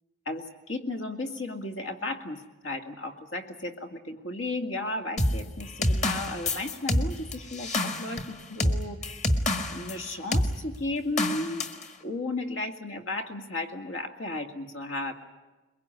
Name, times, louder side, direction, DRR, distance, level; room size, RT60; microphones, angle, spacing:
voice 1, 0.3-9.3 9.7-11.7 12.0-15.1, left 2 dB, 75° left, 5 dB, 2.3 m, -34 dB
sound 1, 5.2-10.0 10.3-10.5 11.2-11.8, left 1 dB, 35° left, 1.7 m, -27 dB
22.5 x 22.0 x 9.9 m, 1.2 s
head